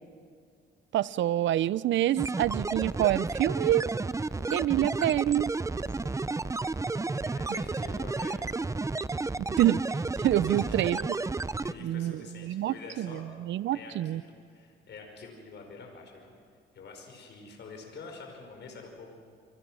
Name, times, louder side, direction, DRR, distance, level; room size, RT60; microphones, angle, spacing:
voice 1, 0.9-3.8 4.5-5.5 9.6-9.8 10.2-11.1 11.8-14.2, right 13 dB, 70° right, 20 dB, 0.6 m, -27 dB
sound 1, 2.2-11.7, right 3 dB, 15° right, 0.6 m, -32 dB
voice 2, 6.0-6.3 7.1-8.4 8.7-8.9 10.4-11.0 11.6-13.4 13.7-16.3 16.7-19.2, left 4 dB, 60° left, 2 dB, 5.3 m, -47 dB
28.5 x 24.5 x 6.3 m, 2.2 s
cardioid pair, 90°, 20 cm